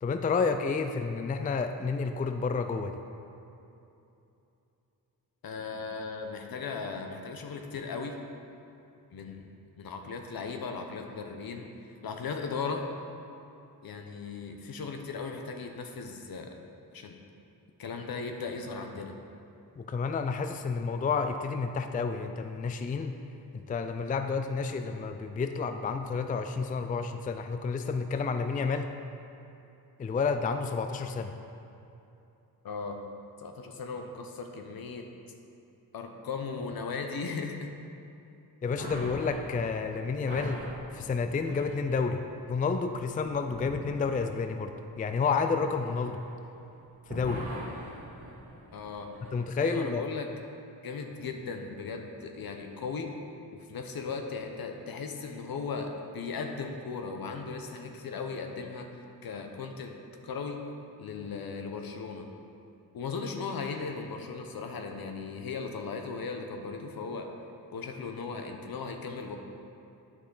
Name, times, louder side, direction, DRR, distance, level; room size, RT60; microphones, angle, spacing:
voice 1, 0.0-2.9 19.8-23.2 23.5-28.9 30.0-31.3 38.6-40.6 40.9-42.2 42.5-46.2 47.1-47.4 49.3-50.0, left 5 dB, 20° left, 7 dB, 0.4 m, -30 dB
voice 2, 5.4-8.2 9.1-9.5 9.8-11.7 12.0-12.9 13.8-16.6 16.9-17.2 17.8-19.2 32.6-33.0 33.4-35.1 35.9-37.7 48.7-49.1 49.6-50.3 50.8-53.2 53.5-60.0 60.2-60.6 61.0-62.3 62.9-67.3 67.7-69.4, left 4 dB, 65° left, 4 dB, 0.9 m, -37 dB
sound 1, 38.7-46.7 47.0-49.4, right 1 dB, 80° right, 1.7 m, -44 dB
8.4 x 6.2 x 3.9 m, 2.8 s
cardioid pair, 65°, 39 cm